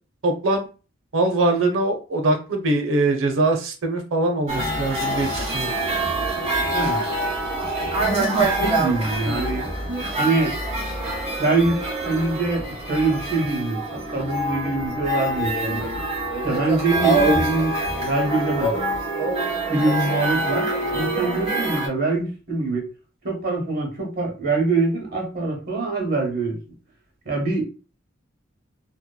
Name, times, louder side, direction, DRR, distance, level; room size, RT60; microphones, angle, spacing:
voice 1, 0.2-0.7 1.1-5.7, right 2 dB, 85° right, 5 dB, 0.6 m, -22 dB
sound 1, 4.5-21.9, right 2 dB, 35° right, 1.0 m, -25 dB
voice 2, 7.6-9.6 10.1-10.5 11.4-12.6 12.9-15.8 16.4-18.7 19.7-22.8 23.2-26.6 27.2-27.6, right 3 dB, 50° right, 0 dB, 1.1 m, -24 dB
2.9 x 2.2 x 2.2 m, 0.34 s
head